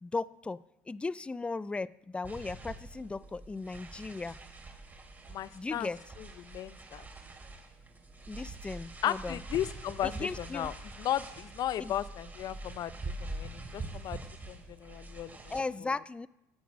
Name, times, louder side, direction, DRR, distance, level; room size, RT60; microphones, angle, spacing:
voice 1, 0.0-4.4 5.5-6.0 8.3-9.4 10.0-10.7 11.8-12.0 15.5-16.3, left 3 dB, 15° left, 0.4 m, -37 dB
sound 1, 2.2-15.6, right 2 dB, 20° right, 2.8 m, -44 dB
voice 2, 5.3-5.9 6.4-7.0 9.0-10.7 11.0-12.9 13.2-14.2 14.5-15.3, left 12 dB, 50° left, 0.6 m, -35 dB
15.0 x 7.1 x 6.2 m
supercardioid pair, 80°, 8 cm